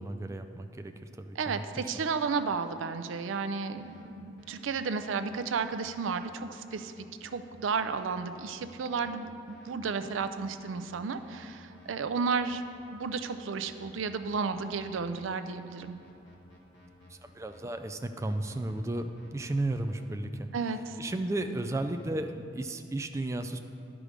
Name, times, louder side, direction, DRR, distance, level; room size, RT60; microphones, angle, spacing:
voice 1, 0.0-1.9 17.1-20.5 21.0-23.6, right 2 dB, 15° right, 7 dB, 0.3 m, -34 dB
voice 2, 1.4-12.6 12.9-16.0 20.5-21.0, right 5 dB, 85° right, 9 dB, 0.5 m, -33 dB
sound 1, 3.7-4.1 4.4-4.6 5.0-5.1 5.5-5.7 6.1-6.3 6.7-6.8 7.2-7.4 7.8-8.0 8.3-8.5 8.9-9.1 9.5-9.7 10.0-10.3 10.6-10.8 11.2-11.4 11.7-11.9 12.3-13.1 13.5-15.4 15.8-17.6 18.2-20.0 21.2-22.1, left 1 dB, 60° left, 1.3 m, -56 dB
11.0 x 4.9 x 5.1 m, 2.5 s
head